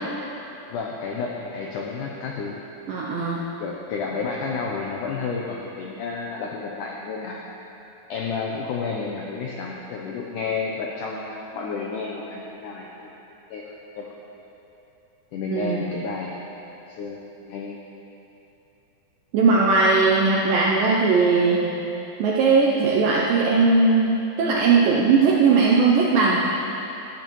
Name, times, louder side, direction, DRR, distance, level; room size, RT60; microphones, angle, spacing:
voice 1, 0.7-2.6 3.6-7.4 8.1-13.1 13.5-14.1 15.3-16.4 16.9-17.8, left 4 dB, 85° left, -2 dB, 1.8 m, -31 dB
voice 2, 2.9-3.4 15.5-15.9 19.3-21.7 22.2-26.4, right 4 dB, 75° right, -3 dB, 2.1 m, -19 dB
14.5 x 12.5 x 3.1 m, 3.0 s
omnidirectional pair, 4.7 m